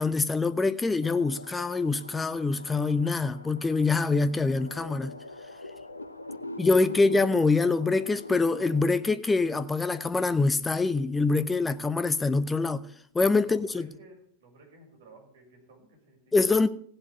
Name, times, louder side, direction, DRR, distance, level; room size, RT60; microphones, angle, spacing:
voice 1, 0.0-5.1 6.6-12.9 13.1-13.9 16.3-16.7, left 3 dB, 10° left, 0.6 m, -25 dB
sound 1, 1.0-8.9, left 1 dB, 85° left, 0.9 m, -44 dB
voice 2, 6.2-6.7 13.4-16.5, right 2 dB, 55° right, 6.2 m, -54 dB
16.0 x 7.9 x 8.4 m
figure-of-eight pair, 90°, 0 cm